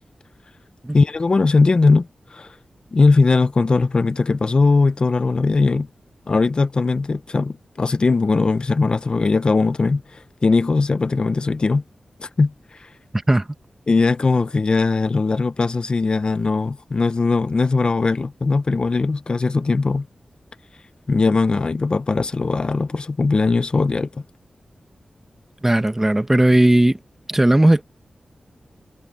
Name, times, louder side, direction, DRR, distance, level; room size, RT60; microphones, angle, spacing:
voice 1, 0.9-2.5 2.9-5.9 6.3-11.8 12.2-12.5 12.8-12.9 13.9-20.1 21.1-24.1, left 3 dB, 45° left, 0.7 m, -19 dB
voice 2, 25.6-27.0 27.3-27.8, right 1 dB, 15° right, 1.1 m, -16 dB
wide cardioid pair, 100°, 2 cm